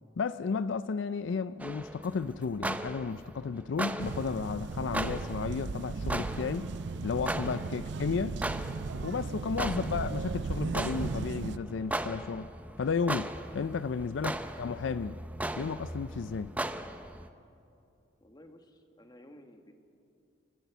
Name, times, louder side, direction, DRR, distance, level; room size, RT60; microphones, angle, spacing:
voice 1, 0.2-6.7 7.0-8.4 9.0-12.5 12.8-15.2 15.6-16.5, left 5 dB, 70° left, 0.4 m, -33 dB
sound 1, 1.6-17.3, right 1 dB, 10° right, 0.7 m, -38 dB
sound 2, 4.0-11.6, right 4 dB, 65° right, 0.5 m, -36 dB
voice 2, 18.2-19.7, left 1 dB, 20° left, 1.5 m, -55 dB
29.5 x 14.5 x 7.1 m
head